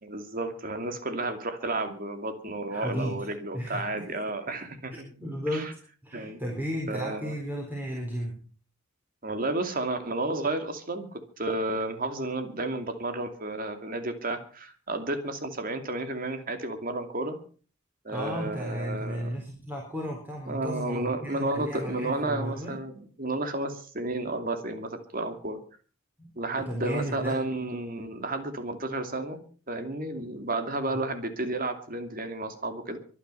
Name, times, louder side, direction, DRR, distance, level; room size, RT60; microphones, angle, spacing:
voice 1, 0.0-5.1 5.5-5.7 6.1-6.4 6.9-7.3 9.2-17.4 18.0-19.4 20.5-25.6 26.4-29.4 29.7-33.0, right 2 dB, 40° right, 7 dB, 2.7 m, -32 dB
voice 2, 2.7-4.2 5.2-5.8 6.0-8.4 18.1-22.8 26.2-27.4, equal, 10° right, -1 dB, 4.2 m, -34 dB
24.0 x 9.7 x 5.7 m, 0.41 s
head